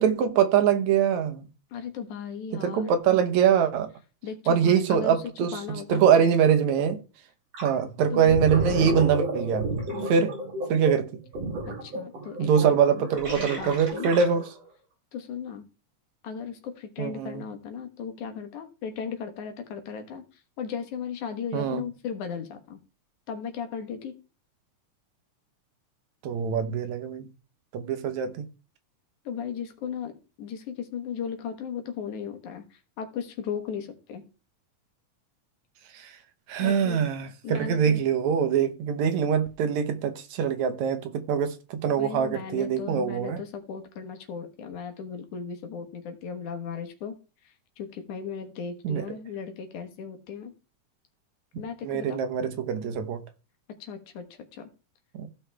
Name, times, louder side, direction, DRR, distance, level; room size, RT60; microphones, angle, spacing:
voice 1, 0.0-1.5 2.6-3.9 4.5-7.0 7.6-9.7 10.1-10.3 10.7-11.2 12.4-14.4 17.0-17.4 21.5-21.8 26.2-27.3 27.7-28.5 35.9-36.1 36.5-43.4 48.8-49.0 51.8-53.2 55.1-55.3, right 7 dB, 75° right, 2.3 m, -23 dB
voice 2, 1.7-2.9 4.2-5.2 5.5-6.0 8.1-9.0 9.9-10.2 11.8-12.5 12.9-13.1 13.4-14.1 15.1-15.7 16.2-22.8 23.3-24.2 29.2-34.2 36.6-37.0 37.4-38.0 42.0-47.2 47.4-50.5 51.6-52.2 53.8-54.3 54.5-54.7, left 7 dB, 85° left, 2.9 m, -36 dB
Gurgling, 7.5-7.8 8.1-14.6, right 2 dB, 60° right, 5.5 m, -32 dB
15.0 x 5.7 x 3.4 m
omnidirectional pair, 3.3 m